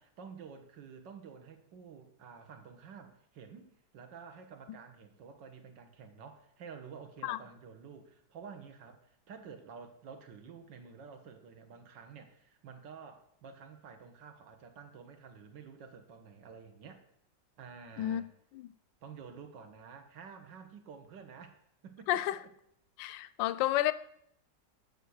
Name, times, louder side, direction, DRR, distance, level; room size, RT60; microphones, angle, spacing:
voice 1, 0.0-17.0 17.6-18.3 19.0-22.2, right 6 dB, 90° right, 1.9 m, -50 dB
voice 2, 22.1-22.4 23.0-23.9, left 14 dB, 90° left, 1.3 m, -30 dB
9.2 x 6.8 x 6.3 m
omnidirectional pair, 1.9 m